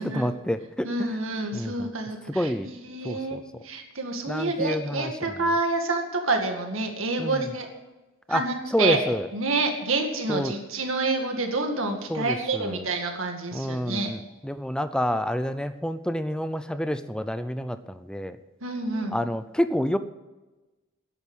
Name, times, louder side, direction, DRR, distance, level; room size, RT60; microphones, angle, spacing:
voice 1, 0.0-1.2 1.5-1.9 2.3-2.7 3.0-3.4 4.3-5.3 7.2-7.5 8.3-8.4 8.7-9.3 10.3-10.5 12.1-12.9 13.5-18.4 19.1-20.0, equal, 5° left, 11 dB, 0.5 m, -28 dB
voice 2, 0.8-7.7 8.3-9.0 9.3-14.1 18.6-19.2, right 3 dB, 65° right, 3 dB, 2.2 m, -28 dB
11.0 x 8.7 x 9.9 m, 1.1 s
head